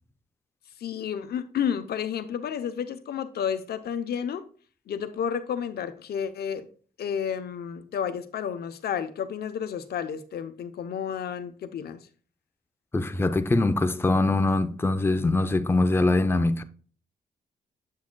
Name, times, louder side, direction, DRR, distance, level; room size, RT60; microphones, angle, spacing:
voice 1, 0.8-4.4 4.9-6.7 7.0-12.1, left 8 dB, 80° left, 0.7 m, -31 dB
voice 2, 12.9-16.6, left 2 dB, 15° left, 0.5 m, -23 dB
7.4 x 7.2 x 2.2 m
cardioid pair, 80°, 16 cm